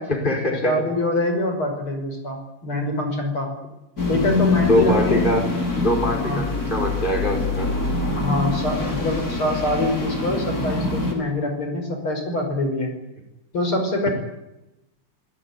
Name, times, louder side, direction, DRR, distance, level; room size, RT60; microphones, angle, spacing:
voice 1, 0.1-0.8 4.7-5.5 5.7-7.7, left 1 dB, 20° left, 2 dB, 5.6 m, -23 dB
voice 2, 0.6-3.5 4.1-5.3 6.0-6.5 8.2-13.0 13.5-14.1, left 1 dB, 75° left, 5 dB, 6.3 m, -25 dB
sound 1, 4.0-11.1, left 2 dB, 45° left, 5.7 m, -24 dB
26.0 x 18.0 x 9.9 m, 0.93 s
omnidirectional pair, 2.3 m